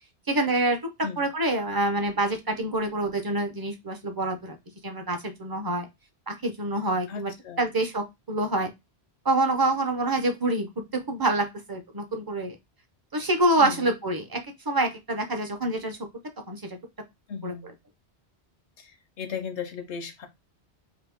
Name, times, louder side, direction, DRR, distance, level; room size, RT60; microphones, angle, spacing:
voice 1, 0.3-0.8 1.2-4.6 4.8-5.9 6.3-7.3 7.6-8.7 9.2-12.6 13.1-16.0 16.5-16.8 17.4-17.7, right 2 dB, 25° right, 0.5 m, -26 dB
voice 2, 7.1-7.7 13.6-13.9 17.3-17.7 18.8-18.9 19.2-20.3, left 6 dB, 90° left, 1.0 m, -36 dB
2.9 x 2.6 x 3.5 m
omnidirectional pair, 1.1 m